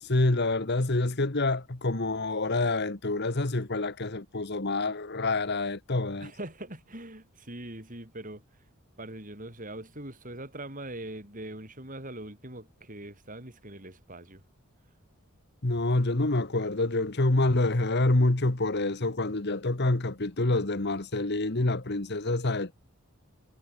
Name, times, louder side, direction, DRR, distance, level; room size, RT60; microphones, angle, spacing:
voice 1, 0.0-6.3 15.6-22.7, left 2 dB, 50° left, 1.4 m, -27 dB
voice 2, 6.2-8.4 9.0-14.4, right 1 dB, 35° right, 7.3 m, -42 dB
head